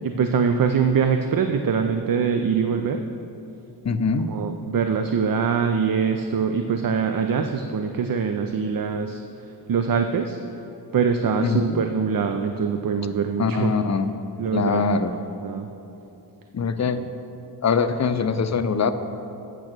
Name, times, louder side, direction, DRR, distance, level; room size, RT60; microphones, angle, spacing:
voice 1, 0.0-3.0 4.3-10.4 10.9-13.7 14.4-14.8 15.4-15.7, right 6 dB, 50° right, 6 dB, 0.5 m, -23 dB
voice 2, 3.8-4.3 11.4-11.8 13.4-14.1 14.5-15.1 16.5-17.1 17.6-18.9, left 5 dB, 40° left, 10 dB, 0.5 m, -22 dB
8.7 x 6.7 x 6.1 m, 2.9 s
wide cardioid pair, 90°, 44 cm